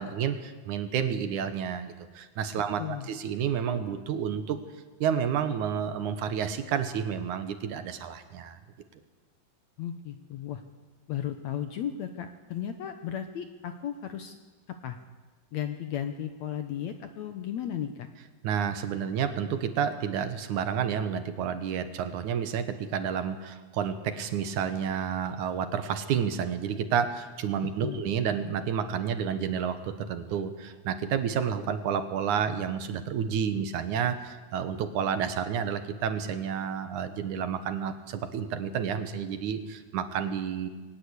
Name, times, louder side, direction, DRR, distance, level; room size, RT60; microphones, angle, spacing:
voice 1, 0.0-4.6 5.0-8.6 18.4-40.7, right 7 dB, 65° right, 10 dB, 2.4 m, -30 dB
voice 2, 2.8-3.1 9.8-10.6 11.1-14.4 14.7-15.0 15.5-18.1 27.8-28.0, left 10 dB, 70° left, 8 dB, 1.7 m, -35 dB
21.5 x 18.5 x 8.2 m, 1.3 s
omnidirectional pair, 4.2 m